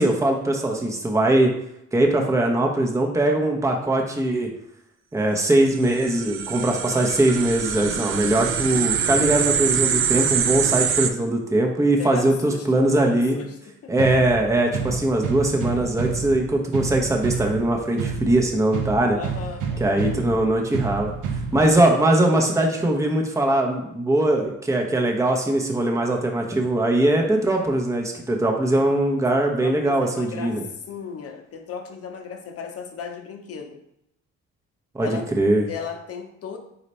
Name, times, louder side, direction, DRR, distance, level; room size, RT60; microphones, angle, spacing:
voice 1, 0.0-1.5 1.9-4.5 5.1-13.4 13.9-19.2 19.8-21.1 21.5-30.7 34.9-35.7, right 1 dB, 10° right, 1 dB, 0.8 m, -21 dB
sound 1, 5.8-11.1, right 8 dB, 45° right, 0.5 m, -24 dB
voice 2, 12.0-14.0 14.7-14.8 19.1-20.1 28.8-29.0 29.4-30.6 30.9-33.8 35.0-35.3 35.7-36.6, left 6 dB, 50° left, 5 dB, 0.7 m, -36 dB
sound 2, 14.0-22.0, right 5 dB, 85° right, 0.8 m, -30 dB
4.2 x 4.0 x 3.2 m, 0.79 s
cardioid pair, 90°, 30 cm